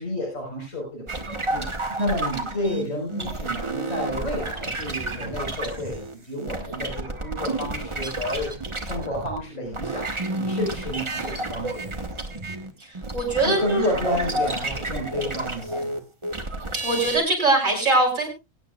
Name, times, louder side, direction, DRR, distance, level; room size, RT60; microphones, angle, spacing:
voice 1, 0.0-12.1 13.4-16.0 17.0-17.1, left 1 dB, 75° left, -2 dB, 5.2 m, -31 dB
sound 1, 1.1-9.4 9.7-17.2, right 2 dB, 25° right, 1.2 m, -30 dB
voice 2, 12.8-13.8 14.2-14.3 16.7-18.3, right 2 dB, 70° right, 0 dB, 6.1 m, -22 dB
23.5 x 9.3 x 2.4 m, 0.24 s
omnidirectional pair, 1.4 m